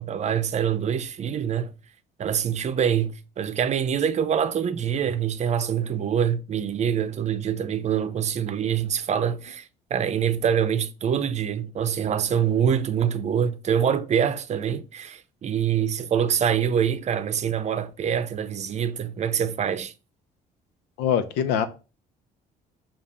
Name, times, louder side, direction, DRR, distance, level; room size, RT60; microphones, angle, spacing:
voice 1, 0.0-1.7 2.2-19.9, right 8 dB, 40° right, 0.6 m, -25 dB
voice 2, 21.0-21.7, left 8 dB, 90° left, 0.8 m, -23 dB
7.1 x 2.5 x 5.5 m
cardioid pair, 110°, 17 cm